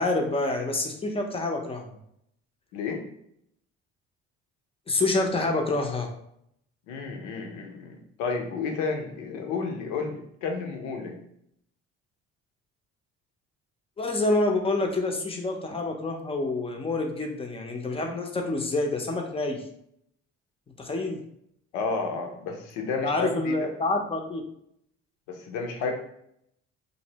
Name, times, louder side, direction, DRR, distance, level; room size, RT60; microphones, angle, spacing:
voice 1, 0.0-1.8 4.9-6.1 14.0-19.6 20.8-21.2 23.0-24.4, left 2 dB, 20° left, 2 dB, 0.5 m, -27 dB
voice 2, 6.9-11.2 21.7-23.7 25.3-25.9, left 4 dB, 85° left, 3 dB, 0.6 m, -31 dB
2.6 x 2.0 x 2.7 m, 0.73 s
supercardioid pair, 80°, 29 cm